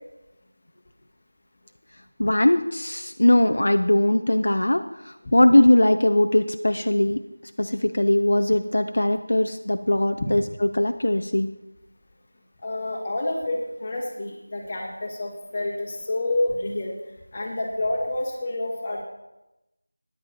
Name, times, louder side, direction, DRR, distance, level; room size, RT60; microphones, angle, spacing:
voice 1, 2.2-4.8 5.3-7.2 7.6-11.5, left 1 dB, 65° left, 8 dB, 0.7 m, -20 dB
voice 2, 12.6-16.9 17.3-19.0, left 2 dB, 20° left, -3 dB, 1.7 m, -28 dB
14.0 x 10.5 x 4.3 m, 0.97 s
figure-of-eight pair, 180°, 0 cm